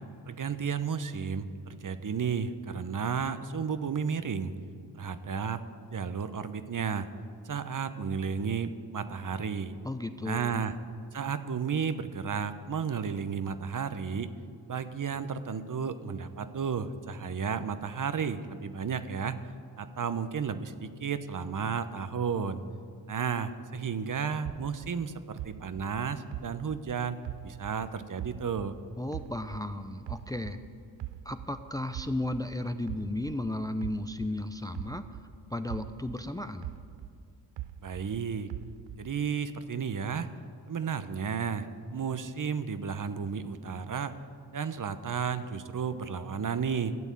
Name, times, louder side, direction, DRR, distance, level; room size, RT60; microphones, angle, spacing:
voice 1, 0.3-4.5 4.9-5.6 5.9-7.1 7.4-9.8 10.2-10.7 11.1-14.3 14.7-19.4 19.8-22.6 23.1-27.2 27.4-28.7 37.8-38.5 39.0-40.3 40.7-44.1 44.5-47.0, right 6 dB, 40° right, 11 dB, 0.8 m, -33 dB
voice 2, 9.8-10.7 29.0-30.6 31.2-35.0 35.5-36.7, left 1 dB, 10° left, 9 dB, 0.6 m, -34 dB
sound 1, 24.4-27.8 28.2-30.6 31.0-35.3 35.7-38.1 38.5-39.2, right 13 dB, 70° right, 0.6 m, -42 dB
12.5 x 7.1 x 8.3 m, 2.3 s
supercardioid pair, 50°, 46 cm